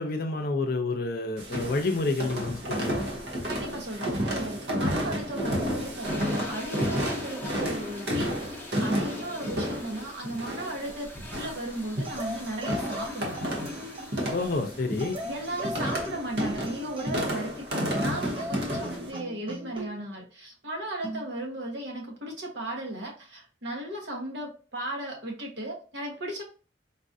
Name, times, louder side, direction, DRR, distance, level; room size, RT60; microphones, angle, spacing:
voice 1, 0.0-3.1 14.3-15.2, left 3 dB, 55° left, 5 dB, 0.6 m, -29 dB
sound 1, 1.4-19.1, equal, 70° right, 0.9 m, -32 dB
voice 2, 3.5-13.4 15.2-26.4, right 1 dB, 85° right, 0 dB, 1.2 m, -36 dB
sound 2, 5.1-16.1, left 2 dB, 10° left, 0.7 m, -43 dB
sound 3, 12.0-14.3 15.0-17.3 17.7-19.9 21.0-21.3, equal, 30° right, 0.6 m, -38 dB
3.9 x 2.5 x 2.6 m, 0.36 s
head